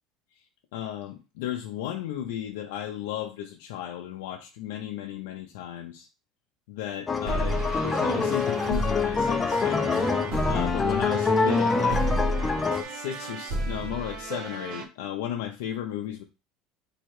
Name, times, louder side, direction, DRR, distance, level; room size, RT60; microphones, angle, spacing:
voice 1, 0.7-6.1 6.7-10.0 10.5-12.1 12.8-16.2, left 11 dB, 90° left, 3 dB, 0.4 m, -34 dB
sound 1, 7.1-12.8, left 4 dB, 20° left, 0.4 m, -25 dB
sound 2, 7.3-14.9, right 2 dB, 60° right, 0.7 m, -32 dB
4.3 x 2.8 x 3.1 m, 0.30 s
cardioid pair, 145°, 0 cm